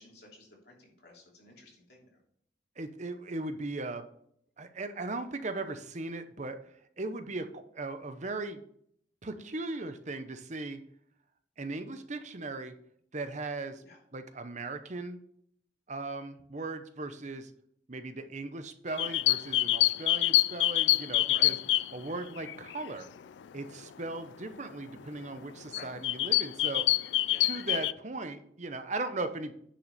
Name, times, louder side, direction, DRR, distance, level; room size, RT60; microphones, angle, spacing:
voice 1, 0.0-2.1 13.8-14.0 21.2-21.6 25.7-25.9 27.3-27.5, left 2 dB, 65° left, -1 dB, 2.9 m, -52 dB
voice 2, 2.8-4.0 4.6-6.6 7.0-8.6 9.2-10.8 11.6-12.7 13.1-13.8 14.1-15.2 15.9-17.5 17.9-21.6 21.9-23.1 23.5-26.9 27.4-29.5, right 2 dB, 40° right, 9 dB, 0.9 m, -38 dB
sound 1, 18.9-22.9 23.4-23.6 24.6-24.7 25.2-25.4 25.7-27.9, left 17 dB, 80° left, 0.3 m, -26 dB
10.0 x 5.9 x 4.2 m, 0.67 s
head